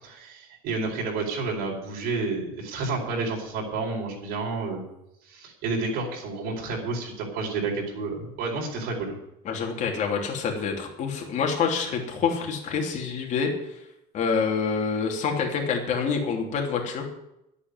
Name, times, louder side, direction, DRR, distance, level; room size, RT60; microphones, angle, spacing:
voice 1, 0.0-4.8 5.2-9.1, right 3 dB, 65° right, -1 dB, 4.6 m, -30 dB
voice 2, 9.4-13.5 14.1-17.1, left 5 dB, 45° left, 1 dB, 3.2 m, -27 dB
10.5 x 8.5 x 9.4 m, 0.84 s
cardioid pair, 135°, 18 cm